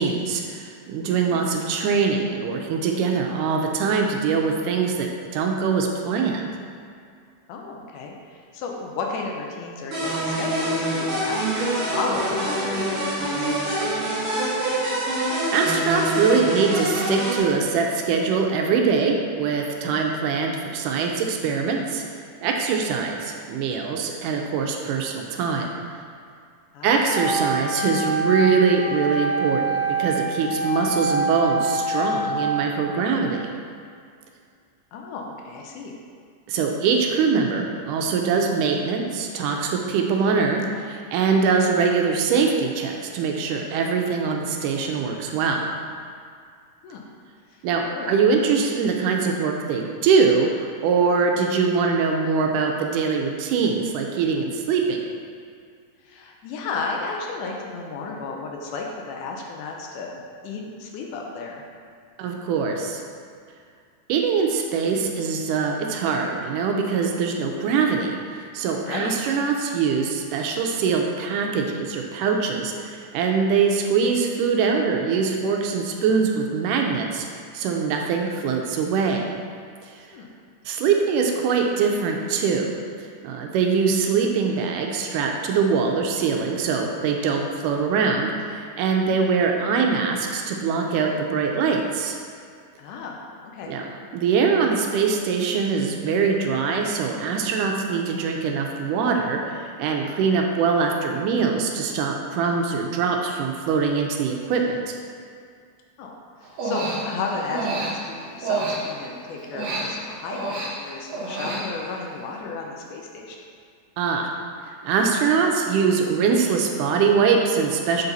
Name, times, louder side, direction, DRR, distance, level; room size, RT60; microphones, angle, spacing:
voice 1, 0.0-6.5 15.5-22.0 22.4-25.7 26.8-33.5 36.5-45.7 47.6-55.0 62.2-63.0 64.1-77.3 77.5-79.3 79.9-80.0 80.7-82.7 83.2-92.2 93.7-93.8 94.1-105.0 114.0-114.3 114.6-118.0, right 5 dB, 80° right, 2 dB, 2.1 m, -23 dB
voice 2, 7.5-14.2 19.9-20.0 26.7-27.0 34.9-36.0 46.8-47.0 47.9-48.1 56.0-61.6 68.9-69.2 80.1-80.3 92.8-93.8 106.0-106.1 106.4-113.4, left 4 dB, 80° left, 0 dB, 2.1 m, -33 dB
sound 1, 9.9-17.4, right 1 dB, 45° right, 1.0 m, -25 dB
Wind instrument woodwind instrument, 27.1-33.0, right 2 dB, 60° left, 2.2 m, -26 dB
Human voice, 106.4-109.2 109.5-112.0, right 3 dB, 65° right, 1.7 m, -29 dB
7.0 x 4.0 x 4.0 m, 2.2 s
omnidirectional pair, 3.7 m